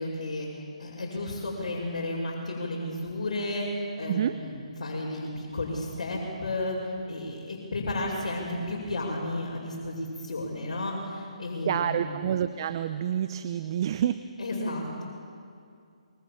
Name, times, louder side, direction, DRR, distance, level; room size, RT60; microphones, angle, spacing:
voice 1, 0.0-12.3 14.4-15.0, left 1 dB, 60° left, -5 dB, 6.0 m, -33 dB
voice 2, 11.7-14.2, right 10 dB, 40° right, 12 dB, 0.8 m, -28 dB
26.0 x 24.0 x 7.2 m, 2.4 s
figure-of-eight pair, 145°, 4 cm